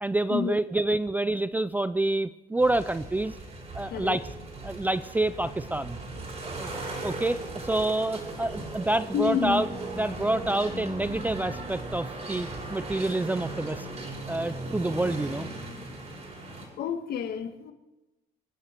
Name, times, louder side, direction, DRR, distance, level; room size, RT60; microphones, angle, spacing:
voice 1, 0.0-3.4 3.7-4.2 4.6-6.0 6.4-9.7 10.0-13.9 14.3-15.5, right 2 dB, 10° right, 14 dB, 0.4 m, -28 dB
sound 1, 2.6-16.7, right 2 dB, 40° right, 5.5 m, -37 dB
voice 2, 3.8-4.2 9.1-9.6 16.8-17.7, left 8 dB, 70° left, 8 dB, 1.6 m, -29 dB
26.5 x 9.2 x 4.5 m, 1.1 s
cardioid pair, 110°, 17 cm